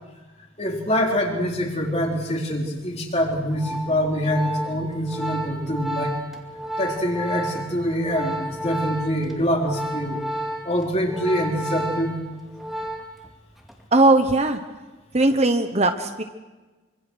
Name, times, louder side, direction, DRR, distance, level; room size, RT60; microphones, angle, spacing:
voice 1, 0.6-6.2 6.8-10.2 10.6-12.2, equal, 30° left, 0 dB, 3.8 m, -25 dB
Organ, 3.3-13.3 13.6-13.9, right 1 dB, ahead, 2.3 m, -32 dB
voice 2, 13.9-14.6 15.1-16.2, right 2 dB, 30° right, 7 dB, 1.1 m, -18 dB
26.0 x 25.0 x 6.4 m, 1.2 s
head